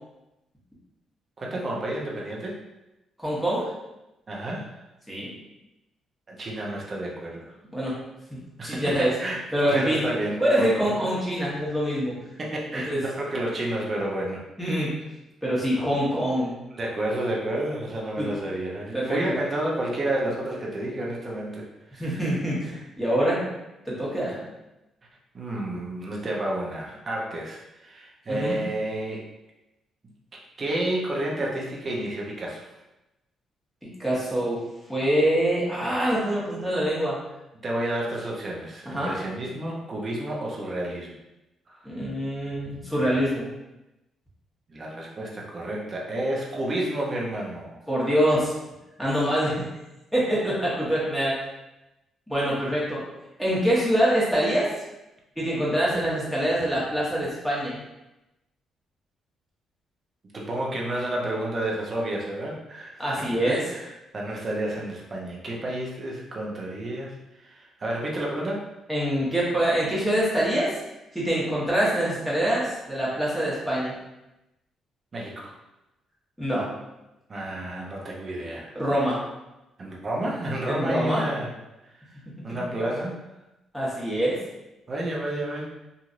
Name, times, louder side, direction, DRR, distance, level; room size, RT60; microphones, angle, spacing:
voice 1, 1.4-2.6 4.3-4.8 6.3-7.5 8.6-11.0 12.4-14.4 16.7-22.3 25.3-29.2 30.6-32.7 37.6-41.2 41.7-41.8 44.7-47.8 60.3-63.4 63.7-68.7 75.1-75.5 77.3-78.8 79.8-81.5 81.8-82.1 82.4-83.2 84.9-85.6, right 1 dB, 40° right, -2 dB, 0.7 m, -30 dB
voice 2, 3.2-3.7 5.1-5.3 7.7-7.9 8.3-9.1 9.5-10.0 10.4-12.2 12.9-13.0 14.6-15.0 15.4-16.6 18.2-18.3 18.9-19.2 22.0-23.5 23.9-24.5 28.3-28.6 34.0-34.6 34.9-37.2 38.8-39.2 41.8-43.4 47.9-48.5 49.0-49.7 50.1-51.4 52.3-53.0 53.4-54.7 55.4-57.8 63.0-63.6 68.9-70.7 71.1-74.0 76.4-76.7 78.7-79.2 80.7-81.3 83.7-84.4, equal, ahead, -7 dB, 1.3 m, -25 dB
3.0 x 2.6 x 2.5 m, 0.96 s
cardioid pair, 90°, 0 cm